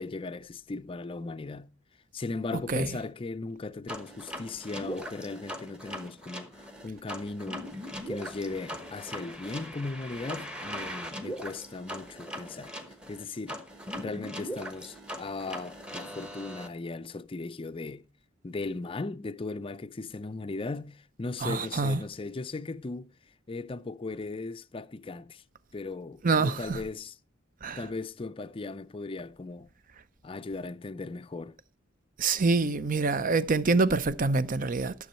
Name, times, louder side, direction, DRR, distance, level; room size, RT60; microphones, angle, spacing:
voice 1, 0.0-1.7 2.1-7.7 8.1-12.8 13.1-13.7 14.0-18.1 18.4-23.1 23.5-25.4 25.7-27.2 27.8-29.7 30.2-31.6, left 3 dB, 25° left, 0.4 m, -37 dB
sound 1, 3.9-16.7, equal, 5° right, 1.1 m, -40 dB
voice 2, 21.4-22.0 26.2-26.8 27.6-27.8 32.2-34.9, right 3 dB, 40° right, 0.6 m, -26 dB
12.5 x 7.0 x 4.3 m
head